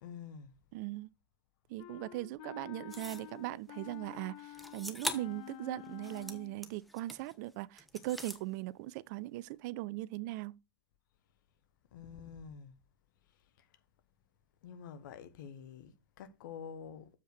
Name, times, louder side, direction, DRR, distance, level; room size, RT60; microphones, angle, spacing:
voice 1, 0.0-0.5 11.9-12.8 13.6-13.7 14.6-17.1, left 7 dB, 65° left, 1.4 m, -48 dB
voice 2, 0.7-1.1 1.7-10.6, right 17 dB, 55° right, 0.4 m, -40 dB
Wind instrument woodwind instrument, 1.8-6.6, left 14 dB, 50° left, 0.7 m, -49 dB
sound 1, 2.9-3.3 4.5-5.4 5.9-7.4 7.8-8.4, equal, ahead, 1.1 m, -42 dB
7.4 x 5.4 x 4.9 m
hypercardioid pair, 90°, 11 cm